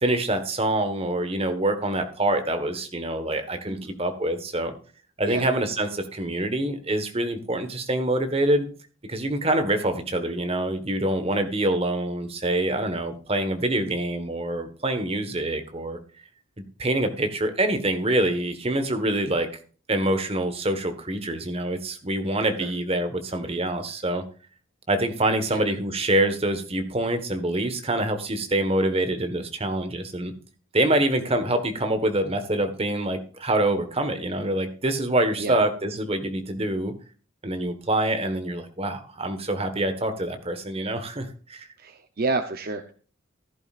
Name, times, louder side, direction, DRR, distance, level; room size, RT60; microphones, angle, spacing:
voice 1, 0.0-4.7 5.2-8.7 9.1-16.0 16.8-19.5 19.9-24.2 24.9-30.3 30.7-36.9 37.4-41.7, right 1 dB, 30° right, 7 dB, 1.4 m, -25 dB
voice 2, 41.8-42.9, right 3 dB, 45° right, 8 dB, 0.7 m, -29 dB
15.5 x 11.0 x 2.5 m, 0.40 s
head